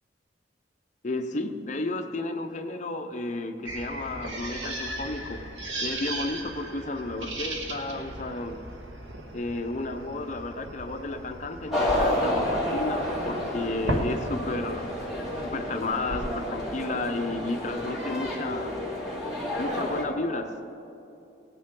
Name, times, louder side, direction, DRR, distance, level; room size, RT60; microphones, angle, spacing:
voice 1, 1.0-5.4 5.8-8.6 9.3-14.8 15.4-18.7 19.6-20.6, left 2 dB, 40° left, 6 dB, 0.7 m, -32 dB
sound 1, 3.7-16.5, right 1 dB, 85° right, 1.4 m, -37 dB
sound 2, 11.7-20.0, left 1 dB, ahead, 2.5 m, -30 dB
18.0 x 9.3 x 3.8 m, 2.8 s
head